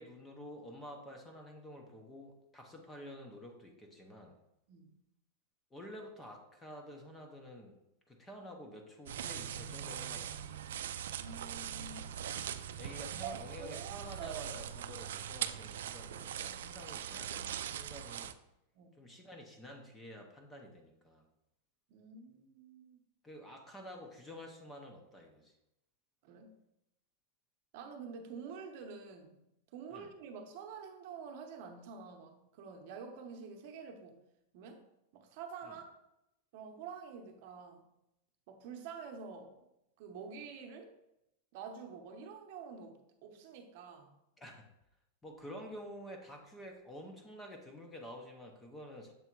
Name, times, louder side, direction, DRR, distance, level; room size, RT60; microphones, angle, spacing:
voice 1, 0.0-4.4 5.7-7.8 8.1-10.7 12.8-18.4 19.0-21.3 23.2-25.5 29.9-30.1 35.6-35.8 44.4-44.6 45.2-49.1, equal, 10° left, 2 dB, 0.6 m, -50 dB
voice 2, 4.7-5.0 11.2-12.0 13.2-14.6 18.7-19.0 21.9-23.0 26.2-26.6 27.7-34.3 34.5-34.8 35.1-35.9 36.5-37.8 38.5-39.6 40.0-40.9 41.5-44.1, right 6 dB, 40° right, 4 dB, 0.9 m, -48 dB
sound 1, 9.1-18.3, right 9 dB, 80° right, 0.4 m, -41 dB
7.0 x 3.4 x 4.5 m, 0.84 s
supercardioid pair, 180°, 0 cm